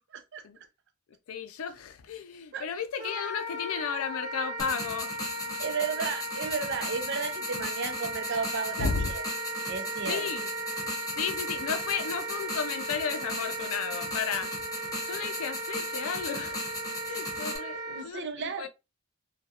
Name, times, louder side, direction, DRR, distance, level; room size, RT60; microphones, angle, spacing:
voice 1, 0.1-0.4 2.5-2.7 5.6-9.2 9.7-10.3 17.9-18.7, right 5 dB, 55° right, 0.5 m, -33 dB
voice 2, 1.3-5.6 8.8-9.1 10.1-10.5 11.2-16.7 17.1-18.7, left 6 dB, 90° left, 0.4 m, -34 dB
Wind instrument woodwind instrument, 3.0-18.1, right 2 dB, 20° right, 1.0 m, -36 dB
sound 1, 4.6-17.6, left 2 dB, 15° left, 0.6 m, -38 dB
2.3 x 2.2 x 2.7 m
head